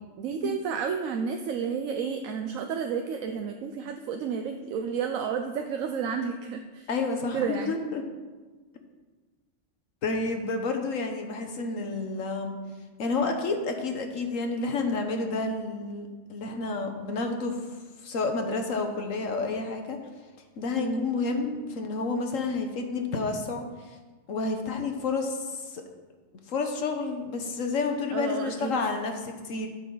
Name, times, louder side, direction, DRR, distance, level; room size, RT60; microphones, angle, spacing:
voice 1, 0.2-6.9 7.3-7.8 20.8-21.0 28.1-28.7, right 6 dB, 80° right, 5 dB, 1.1 m, -31 dB
voice 2, 6.9-8.1 10.0-12.6 13.0-17.6 18.0-20.0 20.6-23.6 24.3-25.8 26.5-29.7, left 3 dB, 75° left, 4 dB, 1.4 m, -30 dB
13.0 x 6.9 x 3.9 m, 1.3 s
omnidirectional pair, 1.4 m